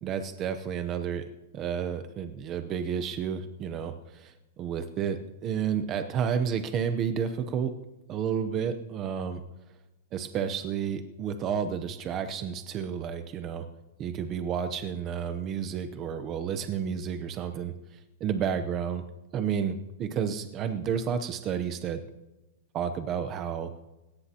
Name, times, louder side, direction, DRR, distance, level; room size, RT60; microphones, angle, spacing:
voice 1, 0.0-1.3 1.5-7.7 8.1-9.4 10.1-13.7 14.0-19.0 19.3-22.0 22.7-23.7, right 7 dB, 20° right, 8 dB, 0.7 m, -31 dB
20.0 x 17.5 x 2.9 m, 1.1 s
supercardioid pair, 175°, 0 cm